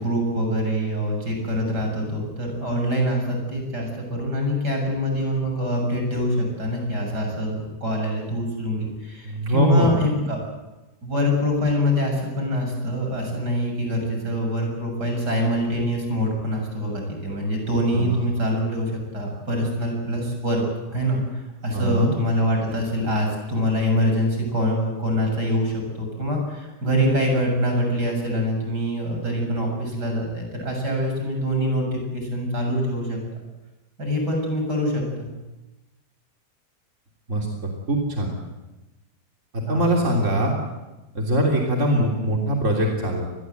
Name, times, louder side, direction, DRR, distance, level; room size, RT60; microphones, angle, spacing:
voice 1, 0.0-10.4 11.0-20.6 20.9-33.2 34.0-35.3 39.7-39.8, equal, 75° right, 2 dB, 8.0 m, -25 dB
voice 2, 9.2-10.0 17.9-18.3 21.7-22.1 37.3-38.3 39.5-40.5 41.1-43.3, right 1 dB, 45° right, 0 dB, 3.6 m, -22 dB
27.5 x 20.5 x 8.1 m, 1.1 s
omnidirectional pair, 1.8 m